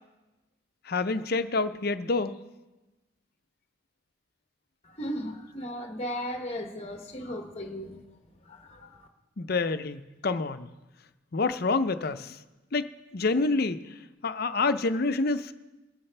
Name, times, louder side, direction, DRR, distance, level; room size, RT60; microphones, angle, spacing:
voice 1, 0.9-2.3 9.4-10.7 11.3-12.4 12.7-13.8 14.2-15.5, left 3 dB, 50° left, 12 dB, 0.6 m, -27 dB
voice 2, 4.8-8.0 8.4-9.1, equal, 35° left, 4 dB, 1.0 m, -36 dB
22.0 x 9.9 x 3.3 m, 1.1 s
head